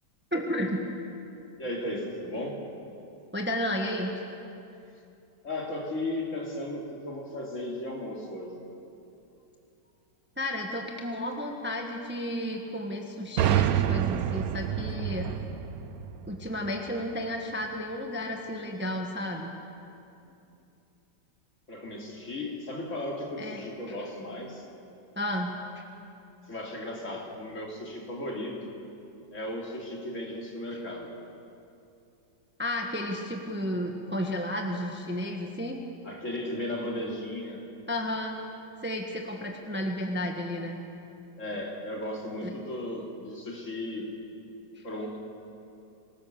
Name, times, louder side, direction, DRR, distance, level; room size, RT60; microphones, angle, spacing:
voice 1, 0.3-0.8 3.3-4.1 10.4-15.3 16.3-19.5 23.4-24.0 25.1-25.8 32.6-35.8 37.9-38.4 38.8-40.8 42.4-42.5 44.7-44.8, left 1 dB, 5° right, 2 dB, 1.3 m, -32 dB
voice 2, 1.6-2.6 5.4-8.6 21.7-24.7 26.5-28.7 29.3-31.1 36.0-37.6 41.4-44.1 44.8-45.2, left 1 dB, 40° left, -1 dB, 3.2 m, -35 dB
sound 1, 13.4-17.0, right 10 dB, 60° right, 1.1 m, -28 dB
25.5 x 18.5 x 6.8 m, 2.7 s
omnidirectional pair, 2.0 m